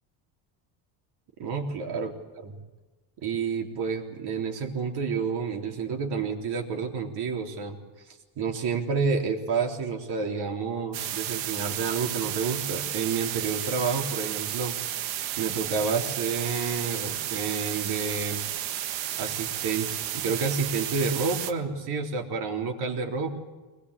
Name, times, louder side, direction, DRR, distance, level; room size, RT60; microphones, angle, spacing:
voice 1, 1.4-2.1 2.4-2.5 3.2-7.8 8.4-14.8 15.4-18.4 19.2-23.3, right 5 dB, 60° right, 2 dB, 3.8 m, -29 dB
sound 1, 10.9-21.5, right 11 dB, 90° right, 1.6 m, -32 dB
23.0 x 20.5 x 8.3 m, 1.2 s
cardioid pair, 150°, 44 cm